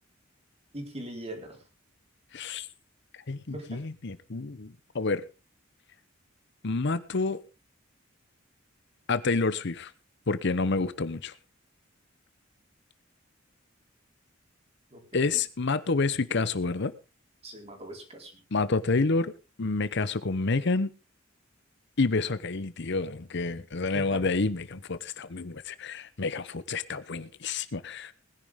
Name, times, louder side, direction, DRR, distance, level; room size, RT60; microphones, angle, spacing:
voice 1, 0.7-1.6 3.5-3.8 14.9-15.4 17.4-18.3 23.9-24.3, right 1 dB, 30° right, 4.2 m, -41 dB
voice 2, 2.3-2.7 3.3-5.2 6.6-7.4 9.1-9.9 10.3-11.3 15.1-16.9 18.5-19.3 19.6-20.9 22.0-28.1, left 3 dB, 60° left, 0.9 m, -28 dB
20.0 x 10.5 x 3.6 m
head